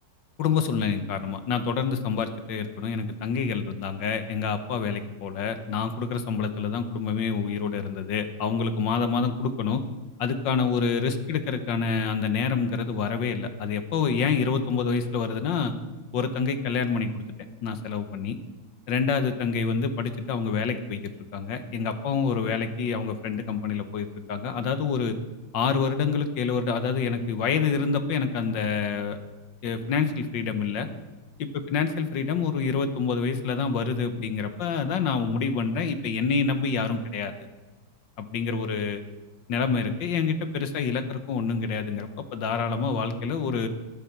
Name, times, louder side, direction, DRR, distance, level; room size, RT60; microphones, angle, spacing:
voice 1, 0.4-9.8 10.2-15.7 16.1-17.2 17.6-18.4 18.9-21.0 21.3-25.2 25.5-29.2 29.6-30.9 31.4-37.3 38.2-39.0 39.5-43.7, left 5 dB, 65° left, 10 dB, 1.6 m, -27 dB
12.5 x 12.5 x 5.9 m, 1.2 s
omnidirectional pair, 2.2 m